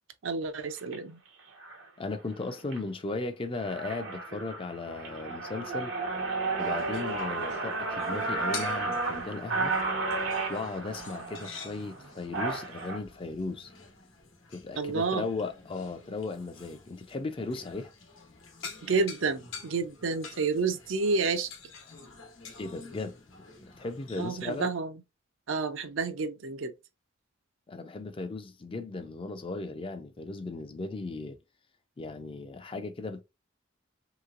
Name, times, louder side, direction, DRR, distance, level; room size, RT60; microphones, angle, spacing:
voice 1, 0.2-1.2 14.8-15.2 18.8-21.5 24.2-24.9 25.5-26.7, right 4 dB, 70° right, 0.5 m, -30 dB
sound 1, 0.8-1.0 1.6-1.9 2.3-2.8 3.2-3.3 3.5-13.0, right 3 dB, 90° right, 1.1 m, -33 dB
voice 2, 2.0-5.9 6.6-9.7 10.5-13.7 14.5-17.9 22.6-23.1 23.8-24.7 27.7-31.4 32.0-33.2, left 3 dB, 25° left, 0.4 m, -36 dB
sound 2, 6.6-24.7, left 5 dB, 80° left, 1.0 m, -48 dB
3.2 x 2.9 x 2.4 m
head